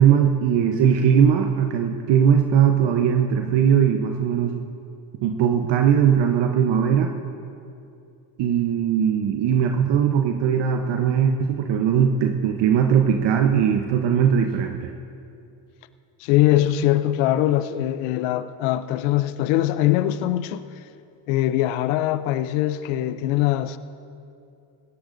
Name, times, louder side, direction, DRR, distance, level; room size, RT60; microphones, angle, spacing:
voice 1, 0.0-4.6 5.2-7.1 8.4-14.9, right 8 dB, 65° right, 0.9 m, -19 dB
voice 2, 16.2-20.6 21.3-23.8, left 13 dB, 80° left, 0.6 m, -22 dB
20.0 x 16.5 x 2.6 m
supercardioid pair, 70°, 46 cm